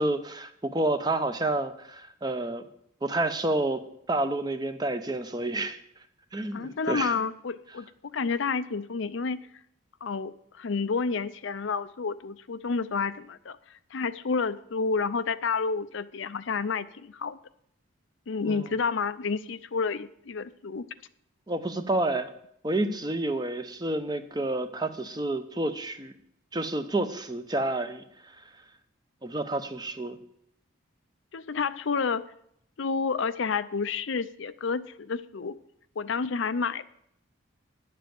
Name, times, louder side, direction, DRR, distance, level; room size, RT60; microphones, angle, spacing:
voice 1, 0.0-2.6 3.0-5.8 6.3-7.1 18.5-18.6 21.5-22.3 22.6-26.1 26.5-28.4 29.2-30.2, right 2 dB, 20° right, 9 dB, 0.7 m, -29 dB
voice 2, 6.5-9.4 10.0-17.4 18.3-20.9 31.3-32.2 32.8-35.6 36.0-36.8, left 5 dB, 65° left, 13 dB, 0.5 m, -30 dB
10.5 x 7.5 x 7.7 m, 0.71 s
head